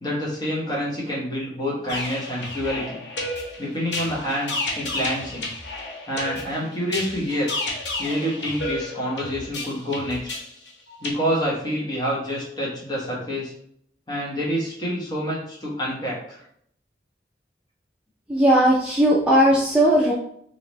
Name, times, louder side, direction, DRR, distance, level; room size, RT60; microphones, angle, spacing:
voice 1, 0.0-3.0 3.6-5.5 6.1-7.5 8.0-10.3 11.0-13.5 14.1-16.4, equal, 25° left, -4 dB, 1.2 m, -27 dB
sound 1, 1.9-11.1, left 2 dB, 75° left, 0.9 m, -32 dB
voice 2, 18.3-20.1, equal, 5° right, -6 dB, 0.4 m, -17 dB
3.5 x 2.8 x 3.0 m, 0.68 s
head